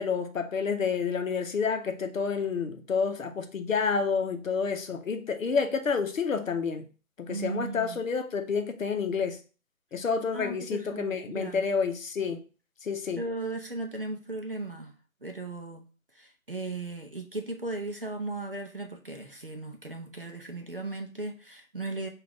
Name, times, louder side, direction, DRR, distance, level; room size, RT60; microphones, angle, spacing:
voice 1, 0.0-6.9 7.2-9.4 9.9-12.4 12.8-13.2, left 5 dB, 70° left, 0.7 m, -29 dB
voice 2, 7.3-8.0 10.3-11.6 13.2-14.9 15.2-15.9 16.1-22.1, right 2 dB, 45° right, 0.5 m, -36 dB
3.8 x 2.5 x 3.3 m
figure-of-eight pair, 170°, 42 cm